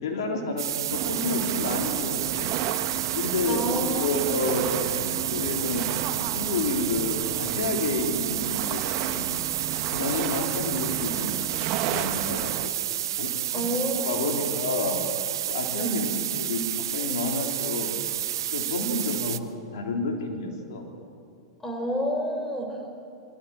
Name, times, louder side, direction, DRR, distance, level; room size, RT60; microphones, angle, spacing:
voice 1, 0.0-2.5 3.1-3.6 3.9-5.8 6.3-9.2 9.9-11.4 11.8-12.7 13.2-13.6 14.0-15.0 15.5-16.1 16.4-17.9 18.5-20.8, left 3 dB, 70° left, 1 dB, 3.8 m, -30 dB
sound 1, 0.6-19.4, right 11 dB, 75° right, 1.0 m, -30 dB
sound 2, 0.9-12.7, right 11 dB, 45° right, 1.4 m, -33 dB
voice 2, 3.4-4.4 13.5-14.5 15.7-16.1 18.8-19.2 21.6-22.9, right 1 dB, 10° left, 4 dB, 4.1 m, -30 dB
23.5 x 15.5 x 9.1 m, 2.5 s
hypercardioid pair, 115°, 2 cm